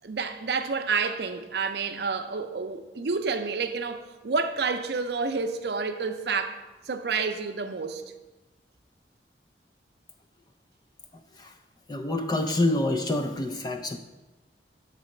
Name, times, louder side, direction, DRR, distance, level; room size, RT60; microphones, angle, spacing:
voice 1, 0.0-8.1, right 4 dB, 65° right, 0.6 m, -29 dB
voice 2, 11.9-14.0, left 1 dB, 25° left, 0.3 m, -27 dB
6.7 x 4.1 x 6.4 m
head